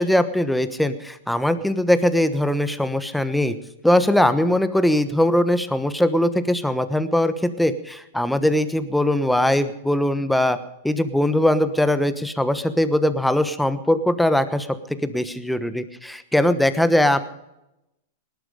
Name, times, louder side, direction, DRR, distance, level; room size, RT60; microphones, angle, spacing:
voice 1, 0.0-3.5 3.8-10.6 10.8-17.2, left 1 dB, ahead, 11 dB, 1.1 m, -21 dB
19.0 x 11.5 x 5.0 m, 0.89 s
hypercardioid pair, 130°, 0 cm